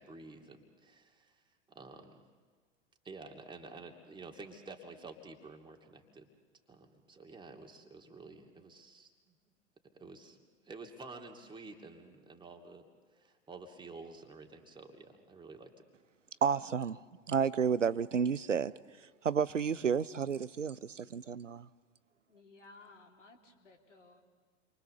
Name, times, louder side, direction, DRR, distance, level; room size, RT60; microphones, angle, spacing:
voice 1, 0.0-1.4 1.7-2.2 3.0-6.3 6.7-9.4 9.9-10.4 10.6-12.9 13.1-15.7, right 3 dB, 10° right, 2.5 m, -50 dB
voice 2, 16.4-17.0 17.3-18.7 19.2-21.7, right 6 dB, 85° right, 0.7 m, -31 dB
voice 3, 22.3-24.2, left 3 dB, 80° left, 3.3 m, -58 dB
29.5 x 24.0 x 6.8 m
figure-of-eight pair, 90°, 36 cm